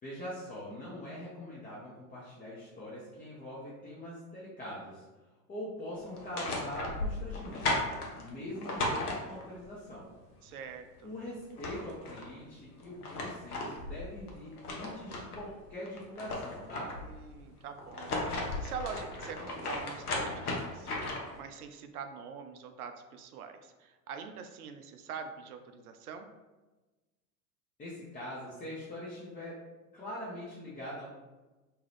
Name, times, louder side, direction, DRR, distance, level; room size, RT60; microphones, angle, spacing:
voice 1, 0.0-5.0 5.5-7.8 8.2-10.1 11.0-16.9 27.8-29.6 29.9-31.1, left 1 dB, 20° left, -7 dB, 0.6 m, -43 dB
sound 1, 6.1-9.7 11.1-11.2 11.4-12.3 12.8-15.5 15.9-17.2 17.8-21.4, left 2 dB, 80° left, 0.8 m, -36 dB
voice 2, 10.4-11.1 17.0-26.3, right 6 dB, 75° right, 7 dB, 0.5 m, -44 dB
2.7 x 2.3 x 3.3 m, 1.2 s
hypercardioid pair, 85°, 44 cm